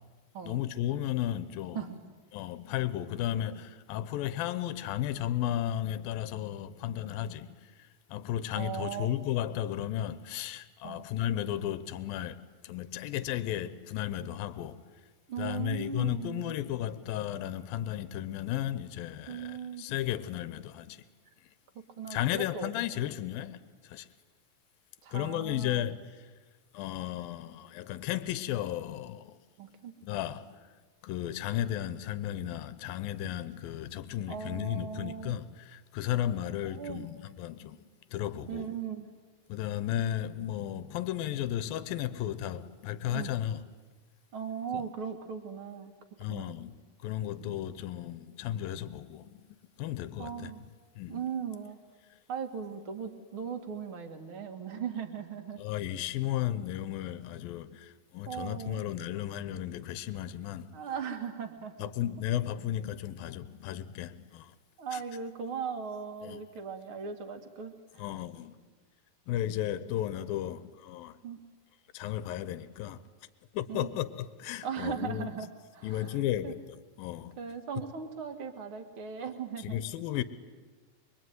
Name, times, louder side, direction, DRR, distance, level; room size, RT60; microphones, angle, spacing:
voice 1, 0.4-1.8 2.3-12.4 12.6-14.8 15.4-21.1 22.1-23.6 23.9-24.1 25.1-26.2 26.7-29.4 30.0-30.5 31.0-37.8 38.1-38.7 39.5-43.6 44.7-44.8 46.2-46.8 47.0-49.4 49.8-50.5 51.0-51.2 55.6-60.7 61.8-64.5 64.9-65.0 66.2-66.4 68.0-68.6 69.3-71.2 71.9-73.0 73.5-75.3 75.8-76.6 77.0-77.4 79.6-80.2, left 12 dB, 80° left, 2.7 m, -34 dB
voice 2, 1.7-2.1 8.6-9.1 10.8-11.1 15.3-16.6 19.3-19.9 21.7-22.7 25.0-25.9 29.6-30.0 34.3-35.4 36.6-37.1 38.5-39.1 43.1-43.3 44.3-45.9 46.3-46.5 50.2-50.7 51.1-51.8 52.3-55.6 58.3-58.8 60.7-61.9 64.8-68.0 71.2-71.4 73.7-73.9 74.6-76.5 77.4-79.8, right 7 dB, 40° right, 2.4 m, -38 dB
25.5 x 23.5 x 9.4 m
omnidirectional pair, 4.1 m